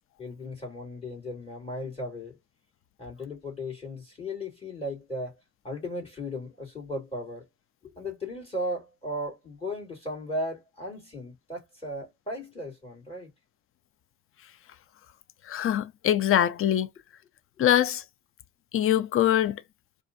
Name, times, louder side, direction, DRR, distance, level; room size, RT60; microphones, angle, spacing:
voice 1, 0.2-2.4 3.0-5.4 5.6-7.5 7.8-13.3, left 1 dB, 20° left, 2.9 m, -36 dB
voice 2, 15.5-16.9 17.6-18.0 18.7-19.6, left 11 dB, 45° left, 0.5 m, -23 dB
4.1 x 2.6 x 2.6 m
cardioid pair, 90°, 30 cm